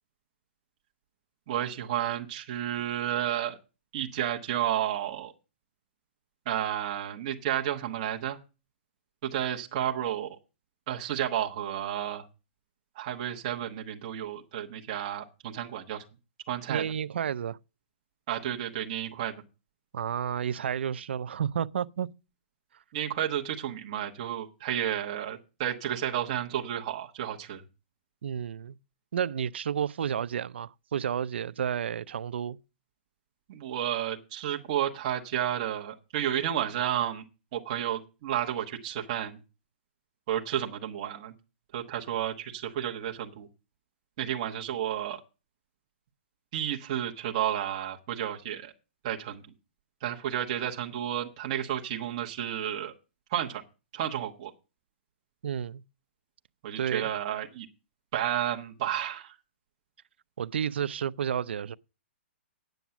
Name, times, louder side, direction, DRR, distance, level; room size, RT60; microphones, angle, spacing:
voice 1, 1.5-3.6 3.9-5.3 6.4-8.4 9.2-10.4 10.9-12.2 12.9-16.0 16.5-16.8 18.3-19.4 22.9-27.6 33.5-37.2 37.5-39.4 40.3-41.3 41.7-43.5 44.2-45.2 46.5-48.7 49.0-49.4 50.0-52.9 53.3-53.6 53.9-54.5 56.6-57.7 58.1-59.4, right 11 dB, 30° right, 1.2 m, -31 dB
voice 2, 16.7-17.6 19.9-22.1 28.2-28.8 29.1-32.6 55.4-55.8 56.8-57.1 60.4-61.7, right 8 dB, 65° right, 0.5 m, -31 dB
9.2 x 7.1 x 7.0 m
hypercardioid pair, 175°, 6 cm